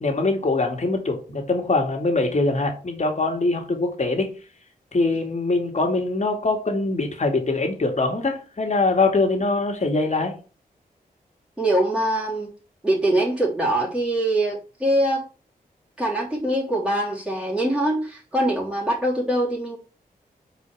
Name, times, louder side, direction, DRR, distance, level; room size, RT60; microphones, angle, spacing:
voice 1, 0.0-4.3 4.9-10.3, left 3 dB, 45° left, 3 dB, 2.3 m, -23 dB
voice 2, 11.6-12.5 12.8-15.2 16.0-19.8, right 1 dB, 5° right, -6 dB, 3.3 m, -23 dB
5.1 x 4.8 x 6.3 m, 0.36 s
cardioid pair, 65°, 16 cm